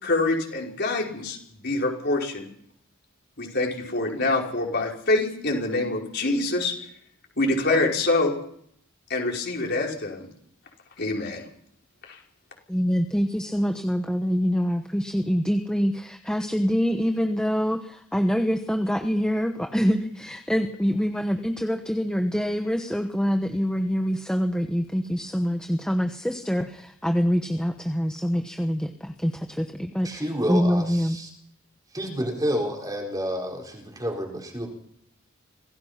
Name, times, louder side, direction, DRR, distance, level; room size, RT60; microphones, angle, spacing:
voice 1, 0.0-2.5 3.4-6.7 7.4-8.3 9.1-10.3 11.0-11.4 12.1-12.2, left 2 dB, 55° left, 0 dB, 5.2 m, -25 dB
voice 2, 12.7-30.2 30.5-31.2, equal, 5° left, 5 dB, 1.1 m, -25 dB
voice 3, 30.0-31.3 31.9-34.7, equal, 20° right, 1 dB, 4.4 m, -29 dB
26.0 x 17.5 x 5.8 m, 0.68 s
head